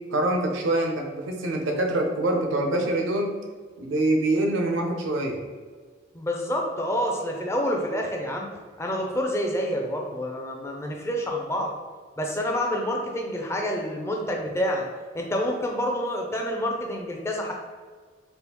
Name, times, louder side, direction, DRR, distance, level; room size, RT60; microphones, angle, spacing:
voice 1, 0.1-3.3 3.8-5.4, right 1 dB, 80° right, 2 dB, 0.5 m, -25 dB
voice 2, 6.1-8.5 8.8-11.7 12.2-14.9 15.1-17.5, equal, 15° left, 1 dB, 0.4 m, -28 dB
3.5 x 2.4 x 2.9 m, 1.5 s
head